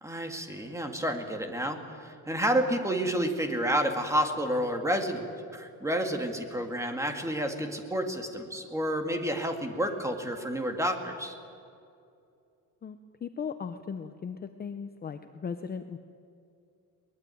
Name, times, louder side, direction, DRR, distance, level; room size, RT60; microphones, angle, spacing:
voice 1, 0.0-11.3, equal, 10° right, 5 dB, 2.1 m, -30 dB
voice 2, 12.8-16.0, left 6 dB, 25° left, 8 dB, 0.7 m, -37 dB
22.5 x 20.0 x 9.3 m, 2.5 s
cardioid pair, 175°, 35 cm